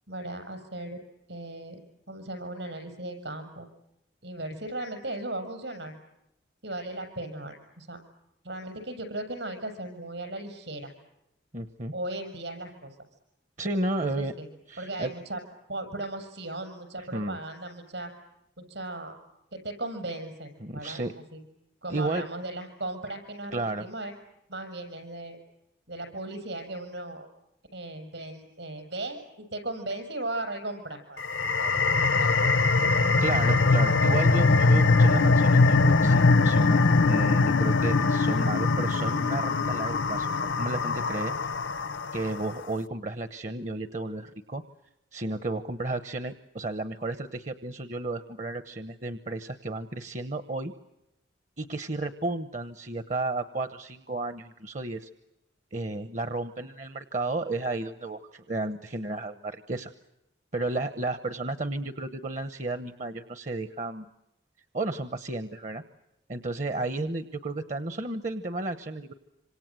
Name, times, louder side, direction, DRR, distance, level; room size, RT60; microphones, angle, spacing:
voice 1, 0.1-1.0 1.3-1.8 2.1-3.7 4.2-5.9 6.6-8.0 8.4-10.9 11.9-13.0 14.0-14.5 14.8-15.4 15.7-18.1 18.7-19.2 19.5-21.0 21.3-21.4 21.8-24.1 24.5-25.4 25.9-27.3 27.7-31.7 32.2-32.5, right 2 dB, 70° right, 8 dB, 7.7 m, -37 dB
voice 2, 11.5-11.9 13.6-14.3 14.7-15.1 17.1-17.4 20.6-21.1 21.9-22.2 23.5-23.8 33.2-40.3 40.6-41.3 42.1-44.6 45.1-50.7 51.6-55.1 55.7-59.9 60.5-64.1 64.7-65.8 66.3-69.1, right 2 dB, 40° right, 10 dB, 1.0 m, -33 dB
sound 1, 31.2-42.4, left 3 dB, 85° left, 1.0 m, -22 dB
26.5 x 26.5 x 7.7 m, 0.89 s
head